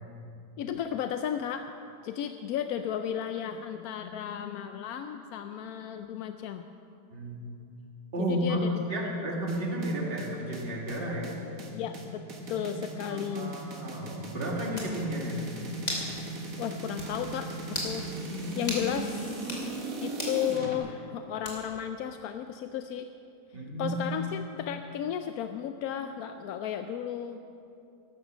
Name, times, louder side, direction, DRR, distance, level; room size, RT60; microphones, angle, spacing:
voice 1, 0.6-1.7 2.0-6.7 8.2-8.7 11.7-12.2 12.5-13.6 16.6-19.6 20.0-23.1 23.8-27.4, left 9 dB, 70° left, 8 dB, 0.9 m, -34 dB
voice 2, 7.1-7.5 8.1-11.3 13.1-15.5 23.5-24.0, equal, 35° right, -2 dB, 2.2 m, -32 dB
sound 1, 9.5-20.8, right 2 dB, 55° right, 2.1 m, -38 dB
sound 2, 14.8-15.0 15.9-16.1 16.5-16.6 17.0-17.1 17.7-18.0 18.7-18.9 19.4-19.7 20.2-20.4 21.4-21.8, left 1 dB, 45° left, 3.1 m, -35 dB
14.0 x 12.0 x 6.2 m, 2.7 s
omnidirectional pair, 1.9 m